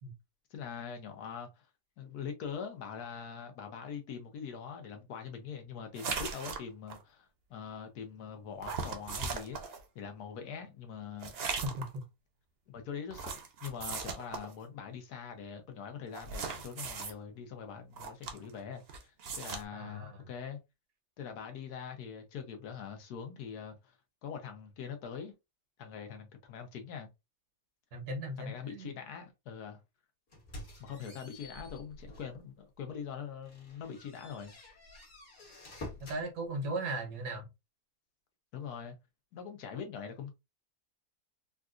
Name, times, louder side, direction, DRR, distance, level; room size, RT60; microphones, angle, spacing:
voice 1, 0.5-1.7 2.0-11.4 12.7-20.6 21.2-24.0 24.2-25.3 25.8-27.1 28.4-29.8 30.8-34.5 38.5-39.0 39.3-40.3, left 7 dB, 85° left, 1.4 m, -43 dB
sound 1, 5.9-7.0 8.6-9.8 11.2-12.0 13.1-14.5 16.1-17.1 17.9-18.6 18.9-19.6, right 5 dB, 55° right, 0.7 m, -38 dB
voice 2, 11.6-12.0 19.7-20.2 27.9-28.9 36.1-37.5, right 1 dB, 90° right, 1.6 m, -37 dB
sound 2, 30.3-32.4 32.9-33.0 33.4-36.2, left 1 dB, 55° left, 1.6 m, -49 dB
3.9 x 2.3 x 2.5 m
omnidirectional pair, 1.6 m